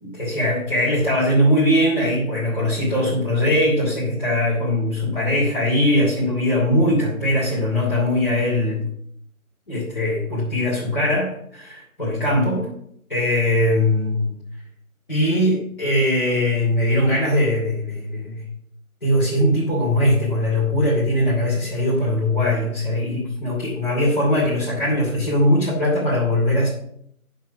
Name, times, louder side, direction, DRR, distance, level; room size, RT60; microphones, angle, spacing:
voice 1, 0.0-8.8 9.7-12.7 13.1-14.4 15.1-18.4 19.0-26.7, left 1 dB, 35° left, -8 dB, 2.9 m, -20 dB
7.3 x 5.9 x 6.0 m, 0.70 s
figure-of-eight pair, 180°, 43 cm